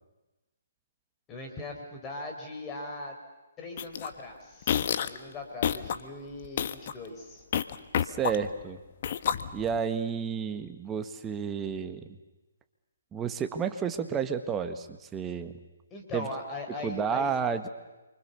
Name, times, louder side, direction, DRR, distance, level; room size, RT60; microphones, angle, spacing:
voice 1, 1.3-3.2 3.6-7.4 15.9-17.3, left 2 dB, 20° left, 3 dB, 4.5 m, -40 dB
sound 1, 3.8-4.1 4.6-5.2 5.6-6.0 6.4-6.9 7.5-8.6 9.0-9.8, left 9 dB, 45° left, 1.3 m, -29 dB
voice 2, 8.0-8.8 9.5-12.0 13.1-15.5 16.1-16.3 16.8-17.7, right 7 dB, 15° right, 8 dB, 1.7 m, -31 dB
29.0 x 24.5 x 7.0 m, 1.1 s
figure-of-eight pair, 140°, 0 cm